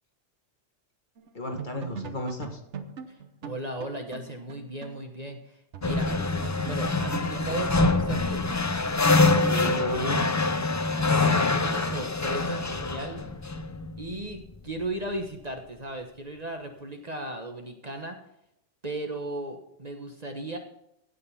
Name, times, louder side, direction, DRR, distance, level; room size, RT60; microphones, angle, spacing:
sound 1, 1.2-1.3 1.6-5.0 5.3-5.4 5.7-10.0, right 6 dB, 80° right, 1.2 m, -41 dB
voice 1, 1.3-2.6 9.4-10.3, left 1 dB, 45° left, 3 dB, 1.9 m, -33 dB
voice 2, 3.4-6.1 6.7-8.4 11.1-13.2 14.0-18.2 18.8-20.6, right 1 dB, 35° right, 4 dB, 1.3 m, -36 dB
sound 2, 5.8-14.4, left 3 dB, 25° left, 0.4 m, -25 dB
16.0 x 5.4 x 5.6 m, 0.79 s
omnidirectional pair, 1.2 m